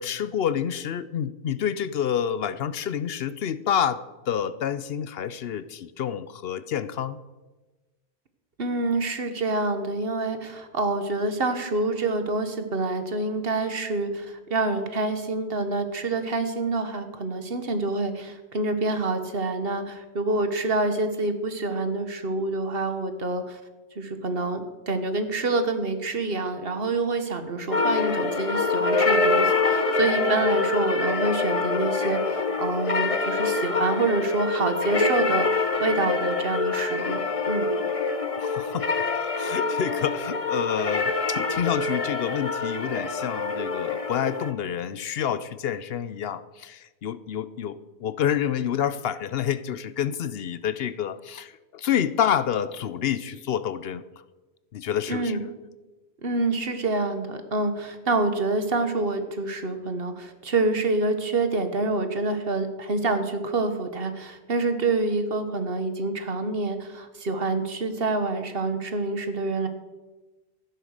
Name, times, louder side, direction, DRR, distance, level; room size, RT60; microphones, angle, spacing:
voice 1, 0.0-7.2 38.4-54.0 54.7-55.4, left 9 dB, 65° left, 15 dB, 0.8 m, -28 dB
voice 2, 8.6-23.6 23.9-37.7 55.1-55.4 56.2-69.7, right 3 dB, 60° right, 8 dB, 1.5 m, -27 dB
sound 1, 27.7-44.5, left 3 dB, 35° left, 0.9 m, -25 dB
14.0 x 10.0 x 6.5 m, 1.2 s
omnidirectional pair, 1.1 m